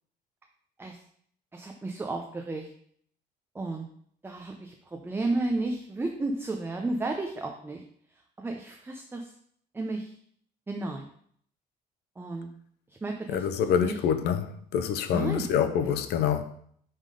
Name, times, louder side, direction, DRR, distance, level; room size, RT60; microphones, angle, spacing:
voice 1, 1.5-2.7 3.5-3.9 4.2-7.8 8.4-9.3 9.7-10.2 10.7-11.1 12.2-12.5 12.9-13.5 13.8-14.0 15.1-15.5, right 2 dB, 15° right, 3 dB, 0.6 m, -32 dB
voice 2, 13.3-16.4, left 8 dB, 75° left, 10 dB, 0.6 m, -26 dB
5.5 x 3.6 x 4.9 m, 0.63 s
cardioid pair, 110°, 17 cm